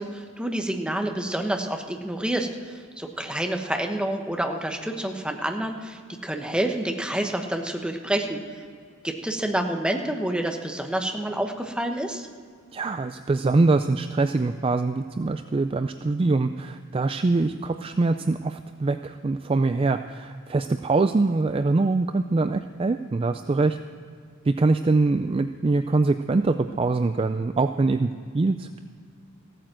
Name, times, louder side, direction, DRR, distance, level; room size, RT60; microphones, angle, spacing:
voice 1, 0.0-8.4 9.0-12.3, right 1 dB, 5° right, 3 dB, 1.0 m, -28 dB
voice 2, 12.7-23.8 24.4-28.8, right 3 dB, 25° right, 9 dB, 0.3 m, -23 dB
15.5 x 9.1 x 7.4 m, 2.1 s
head